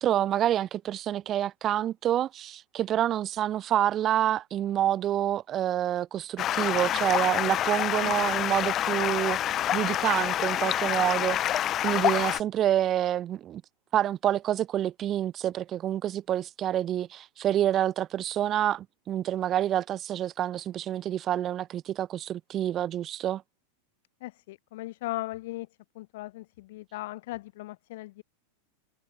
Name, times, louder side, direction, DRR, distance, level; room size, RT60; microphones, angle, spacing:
voice 1, 0.0-13.6 13.9-23.4, right 11 dB, 30° right, 1.7 m, -28 dB
Stream, 6.4-12.4, left 11 dB, 30° left, 2.7 m, -27 dB
voice 2, 8.0-8.4 10.8-11.3 24.2-25.7 25.9-28.2, left 18 dB, 50° left, 6.3 m, -38 dB
figure-of-eight pair, 90°, 0 cm